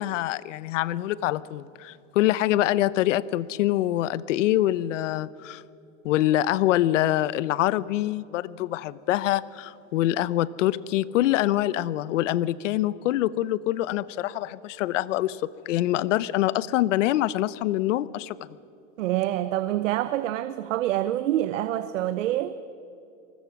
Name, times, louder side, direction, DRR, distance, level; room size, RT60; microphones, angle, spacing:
voice 1, 0.0-5.6 6.0-18.4, left 14 dB, 80° left, 0.8 m, -25 dB
voice 2, 19.0-22.5, right 13 dB, 85° right, 0.9 m, -26 dB
27.5 x 20.5 x 6.1 m
supercardioid pair, 145°, 37 cm